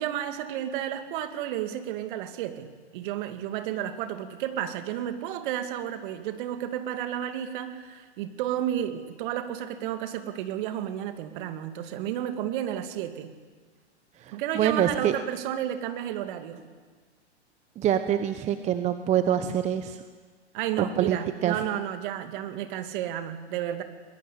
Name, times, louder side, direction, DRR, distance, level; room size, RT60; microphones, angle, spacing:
voice 1, 0.0-2.7 2.9-13.3 14.3-16.6 20.5-23.8, right 11 dB, 45° right, 8 dB, 2.4 m, -32 dB
voice 2, 14.5-15.1 17.8-20.0 21.0-21.2 21.4-21.6, right 10 dB, 20° right, 10 dB, 0.9 m, -25 dB
22.5 x 21.0 x 8.6 m, 1.5 s
hypercardioid pair, 125°, 34 cm